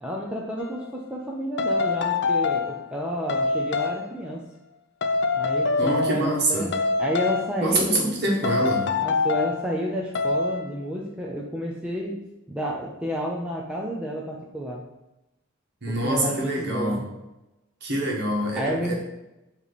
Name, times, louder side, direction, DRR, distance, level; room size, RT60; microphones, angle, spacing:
voice 1, 0.0-4.4 5.3-5.7 6.0-6.7 7.0-8.1 9.0-12.2 12.5-14.8 16.0-17.0 18.6-19.0, equal, 5° right, -2 dB, 0.7 m, -30 dB
sound 1, 0.6-0.8 1.6-2.8 3.3-4.0 5.0-6.4 6.7-7.6 8.4-9.6 10.2-10.7, left 4 dB, 55° left, 0.5 m, -25 dB
voice 2, 5.8-6.7 7.6-8.9 15.8-17.0 17.8-19.0, right 1 dB, 55° right, -2 dB, 1.7 m, -25 dB
8.6 x 3.2 x 4.1 m, 0.95 s
head